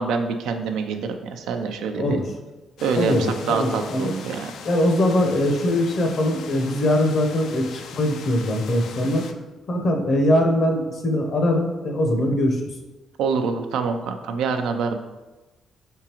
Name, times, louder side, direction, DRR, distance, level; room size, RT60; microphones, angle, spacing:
voice 1, 0.0-2.2 2.8-3.1 3.5-4.5 13.2-15.0, right 5 dB, 85° right, 6 dB, 0.4 m, -25 dB
voice 2, 1.9-2.2 2.9-4.1 4.6-9.2 9.7-12.6, left 1 dB, 55° left, 3 dB, 0.8 m, -22 dB
sound 1, 2.8-9.3, left 6 dB, 75° left, 0.3 m, -40 dB
4.7 x 3.6 x 2.9 m, 1.1 s
cardioid pair, 90°, 0 cm